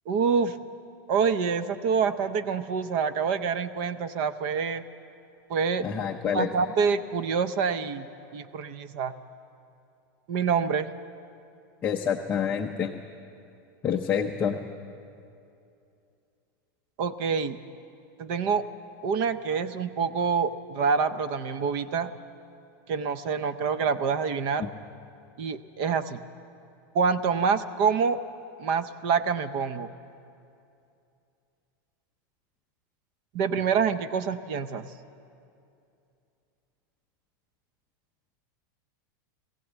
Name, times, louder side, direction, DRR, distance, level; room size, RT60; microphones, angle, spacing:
voice 1, 0.1-0.6 1.1-4.8 5.5-5.9 6.3-8.1 8.3-9.1 10.3-10.9 17.0-17.6 18.2-18.6 19.0-22.1 22.9-24.7 25.4-26.2 26.9-28.2 28.6-29.9 33.3-34.9, right 6 dB, 40° right, 12 dB, 0.6 m, -26 dB
voice 2, 5.8-6.5 11.8-12.9 13.8-14.6 24.6-24.7, left 7 dB, 15° left, 2 dB, 0.6 m, -27 dB
21.0 x 16.0 x 8.0 m, 2.6 s
supercardioid pair, 180°, 11 cm